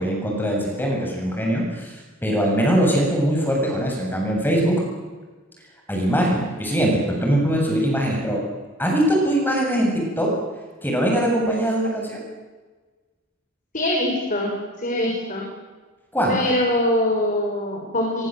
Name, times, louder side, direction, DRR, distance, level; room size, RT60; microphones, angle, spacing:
voice 1, 0.0-1.9 2.2-4.7 5.9-8.4 8.8-10.3 10.8-12.2 16.1-16.4, equal, 10° left, 0 dB, 7.7 m, -21 dB
voice 2, 13.7-15.5 16.3-18.3, left 1 dB, 40° left, 0 dB, 5.9 m, -23 dB
30.0 x 24.0 x 7.9 m, 1.3 s
head